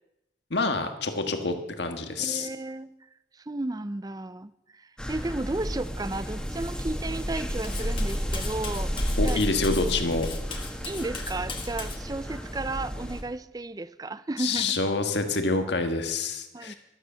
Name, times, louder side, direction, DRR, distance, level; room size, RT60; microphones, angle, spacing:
voice 1, 0.5-2.5 9.2-10.3 14.4-16.7, left 3 dB, 70° left, 6 dB, 1.7 m, -27 dB
voice 2, 2.2-2.9 3.5-9.4 9.7-9.8 10.9-14.8 16.5-16.7, right 2 dB, 20° right, 15 dB, 0.5 m, -34 dB
sound 1, 5.0-13.2, equal, 5° left, 1.8 m, -31 dB
Cutlery silverware, 7.6-12.0, left 5 dB, 30° left, 1.6 m, -39 dB
13.0 x 12.5 x 6.9 m, 0.90 s
head